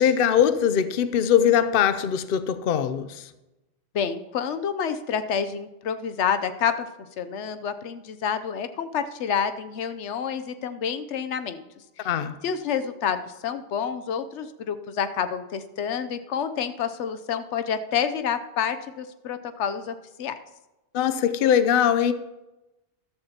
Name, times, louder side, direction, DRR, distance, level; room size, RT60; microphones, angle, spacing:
voice 1, 0.0-3.1 12.0-12.3 20.9-22.1, left 9 dB, 60° left, 0.7 m, -21 dB
voice 2, 3.9-6.9 7.2-11.6 12.0-12.1 12.4-20.4, left 7 dB, 85° left, 1.0 m, -28 dB
13.5 x 12.5 x 2.9 m
omnidirectional pair, 1.2 m